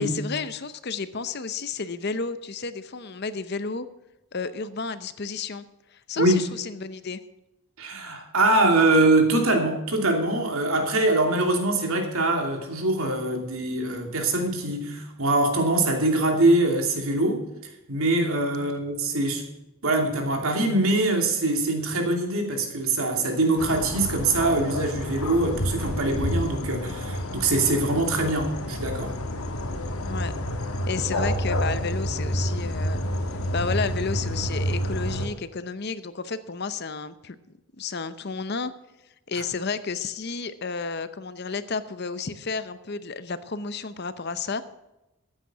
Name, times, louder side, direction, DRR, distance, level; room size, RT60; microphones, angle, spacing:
voice 1, 0.0-3.9 4.3-5.6 5.9-7.2 18.6-18.7 30.0-30.3 30.9-33.0 33.5-37.4 37.8-38.7 39.3-44.6, left 4 dB, 50° left, 13 dB, 0.7 m, -31 dB
voice 2, 7.8-17.4 17.9-19.5 19.8-29.1, right 2 dB, 75° right, 3 dB, 2.8 m, -23 dB
sound 1, 23.6-35.3, equal, 80° left, 1.5 m, -29 dB
14.0 x 9.1 x 6.0 m, 0.95 s
head